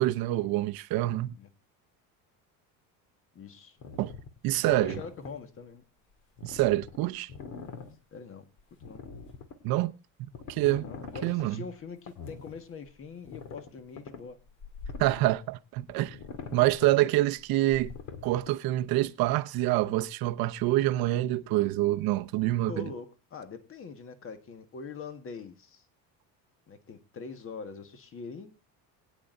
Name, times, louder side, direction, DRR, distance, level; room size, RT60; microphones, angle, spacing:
voice 1, 0.0-1.4 4.0-4.1 4.4-5.0 6.4-7.3 9.6-9.9 10.2-10.9 11.2-11.6 15.0-16.2 16.5-17.9 18.2-22.9, right 16 dB, 65° right, 0.9 m, -26 dB
voice 2, 3.3-3.8 4.5-5.8 8.1-8.4 8.8-9.0 10.8-14.4 22.7-25.8 26.7-28.5, left 5 dB, 35° left, 1.6 m, -43 dB
sound 1, 3.8-5.3 6.4-8.0 8.6-9.6 10.3-11.5 12.1-12.6 12.9-13.0 13.2-15.4 15.8-18.5, left 5 dB, 50° left, 2.1 m, -43 dB
22.5 x 9.4 x 2.6 m
cardioid pair, 130°, 38 cm